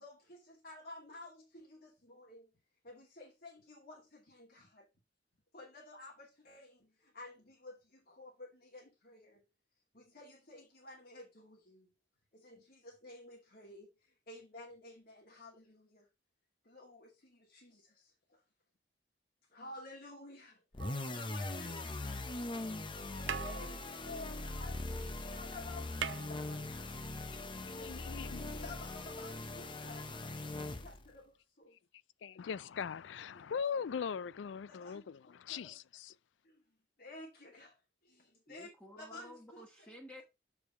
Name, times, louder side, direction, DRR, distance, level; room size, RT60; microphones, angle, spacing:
voice 1, 0.6-1.3 2.3-2.4 3.2-3.3 3.7-4.0 5.5-6.1 6.5-6.6 7.2-7.3 7.6-7.7 8.2-8.3 10.2-10.6 10.8-11.2 13.0-13.2 13.5-13.8 14.3-14.9 15.4-15.5 16.8-16.9 19.6-20.5 21.1-22.2 23.2-23.7 24.1-24.7 25.3-26.1 26.5-26.6 28.6-29.9 30.8-30.9 34.8-34.9 37.0-37.7 38.5-38.7 39.1-39.3, left 2 dB, 55° left, 2.4 m, -49 dB
sound 1, 20.7-31.1, left 2 dB, 25° left, 0.8 m, -41 dB
sound 2, 20.8-22.0 22.9-23.0 23.2-25.1 25.4-25.5 25.7-27.1 28.3-28.4, right 8 dB, 90° right, 0.5 m, -44 dB
voice 2, 27.3-28.7 32.2-36.1, left 6 dB, 80° left, 0.4 m, -41 dB
voice 3, 38.5-40.2, equal, 5° left, 1.5 m, -53 dB
7.0 x 4.9 x 5.4 m
head